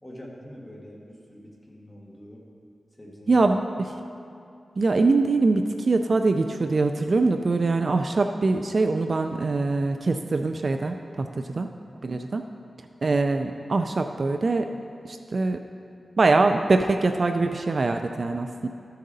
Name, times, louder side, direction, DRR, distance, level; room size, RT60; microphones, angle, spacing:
voice 1, 0.0-2.5 3.0-3.5 11.3-11.7, equal, 15° left, -3 dB, 1.6 m, -45 dB
voice 2, 3.3-3.9 4.8-11.3 11.6-11.7 12.0-12.4 13.0-14.7 15.0-15.6 16.2-18.7, right 3 dB, 50° right, 6 dB, 0.3 m, -23 dB
13.0 x 6.5 x 4.0 m, 2.5 s
wide cardioid pair, 120°, 0 cm